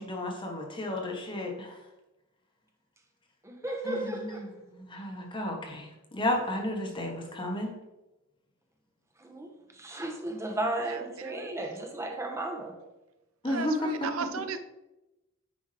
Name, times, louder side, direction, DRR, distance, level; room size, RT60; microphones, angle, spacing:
voice 1, 0.0-1.7 3.8-4.4 4.8-7.7 13.4-14.1, left 1 dB, 25° left, 1 dB, 1.2 m, -32 dB
voice 2, 3.4-4.5 9.2-12.7, right 1 dB, 15° right, 2 dB, 1.0 m, -35 dB
voice 3, 10.9-11.6 13.4-14.6, right 6 dB, 70° right, 9 dB, 0.6 m, -36 dB
9.5 x 5.3 x 3.3 m, 0.98 s
head